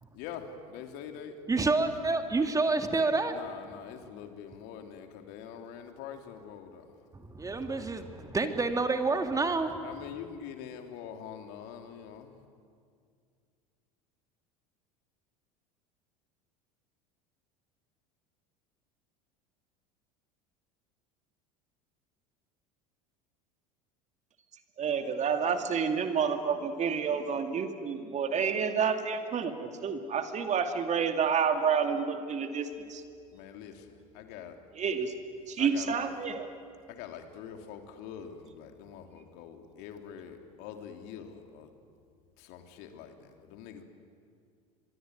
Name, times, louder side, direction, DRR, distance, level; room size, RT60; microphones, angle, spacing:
voice 1, 0.1-1.3 3.3-6.9 9.8-12.3 33.3-34.6 35.6-36.1 36.9-41.7 42.4-43.8, left 8 dB, 60° left, 5 dB, 3.0 m, -44 dB
voice 2, 1.5-3.3 7.3-9.8, right 3 dB, 20° right, 7 dB, 2.3 m, -28 dB
voice 3, 24.8-33.0 34.7-35.1 35.5-36.5, right 6 dB, 40° right, 6 dB, 2.5 m, -29 dB
24.0 x 24.0 x 9.4 m, 2.2 s
hypercardioid pair, 80°, 19 cm